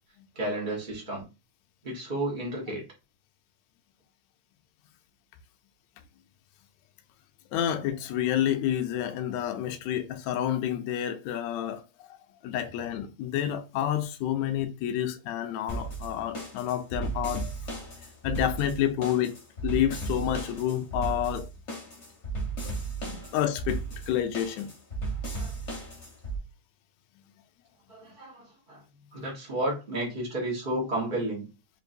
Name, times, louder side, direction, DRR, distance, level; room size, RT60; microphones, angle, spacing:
voice 1, 0.3-1.3 1.8-2.8 25.3-25.5 27.9-28.8 29.1-31.5, right 1 dB, 90° right, 0.4 m, -32 dB
voice 2, 7.5-12.2 12.4-17.5 18.2-19.4 19.6-21.5 22.6-22.7 23.0-23.8 24.1-24.7, left 11 dB, 80° left, 1.7 m, -29 dB
sound 1, 15.7-26.4, right 3 dB, 50° left, 0.8 m, -35 dB
5.2 x 2.5 x 2.7 m
omnidirectional pair, 3.4 m